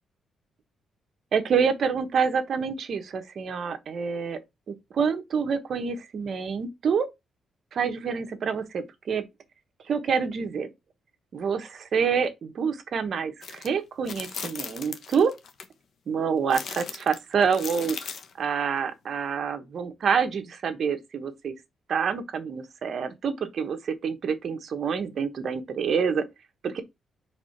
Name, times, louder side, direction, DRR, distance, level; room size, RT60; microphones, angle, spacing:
voice 1, 1.3-4.4 4.7-7.1 7.7-9.2 9.9-10.7 11.3-15.3 16.1-18.0 18.4-21.5 21.9-26.2 26.6-26.8, right 6 dB, 55° right, 1.1 m, -27 dB
sound 1, 13.4-13.7 14.1-15.6 16.5-18.3, left 6 dB, 55° left, 1.0 m, -37 dB
4.8 x 3.7 x 5.7 m
cardioid pair, 115°, 0 cm